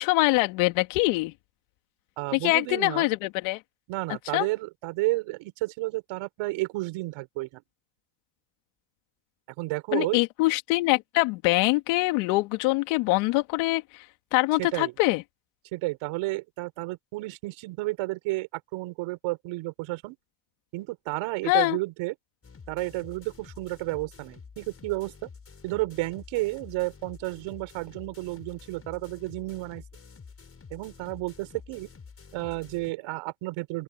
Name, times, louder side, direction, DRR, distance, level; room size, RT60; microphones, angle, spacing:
voice 1, 0.0-1.3 2.3-3.6 4.3-4.5 9.9-14.0 14.3-15.2 21.4-21.8, left 22 dB, 85° left, 2.3 m, -24 dB
voice 2, 2.2-3.1 3.9-7.6 9.6-10.2 14.6-14.9 15.7-20.2 20.7-22.1 22.7-25.3 25.6-29.8 30.7-31.9 32.3-33.8, right 21 dB, 75° right, 5.5 m, -32 dB
sound 1, 22.4-32.9, left 5 dB, 30° left, 7.4 m, -49 dB
open air
supercardioid pair, 95°, 48 cm